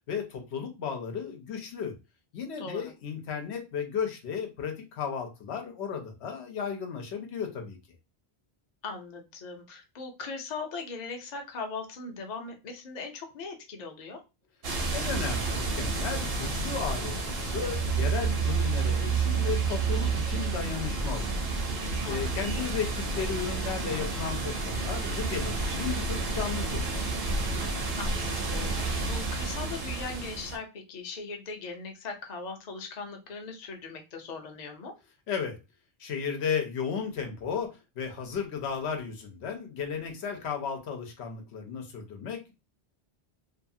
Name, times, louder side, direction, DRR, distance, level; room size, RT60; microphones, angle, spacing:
voice 1, 0.1-2.0 2.3-7.8 14.9-21.5 22.1-27.0 35.3-35.6 36.0-42.5, left 6 dB, 90° left, 4 dB, 1.0 m, -34 dB
voice 2, 2.6-2.9 8.8-14.2 22.0-22.7 28.0-34.9, left 4 dB, 50° left, 4 dB, 0.7 m, -39 dB
sound 1, 14.6-30.6, right 4 dB, 65° right, 1.0 m, -30 dB
2.7 x 2.3 x 2.6 m, 0.27 s
omnidirectional pair, 1.1 m